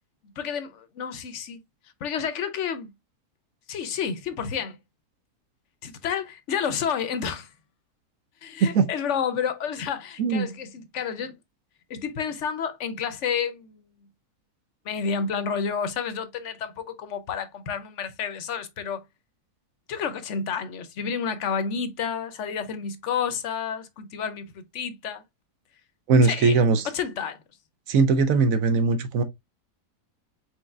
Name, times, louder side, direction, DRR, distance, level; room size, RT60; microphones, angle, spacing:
voice 1, 0.4-1.6 2.0-2.9 3.7-4.8 5.8-7.5 8.4-11.3 11.9-13.9 14.8-19.0 19.9-25.2 26.2-26.6 26.8-27.4, left 7 dB, 60° left, 0.8 m, -30 dB
voice 2, 26.1-26.9 27.9-29.2, right 4 dB, 65° right, 1.0 m, -20 dB
4.7 x 4.3 x 2.3 m
omnidirectional pair, 1.7 m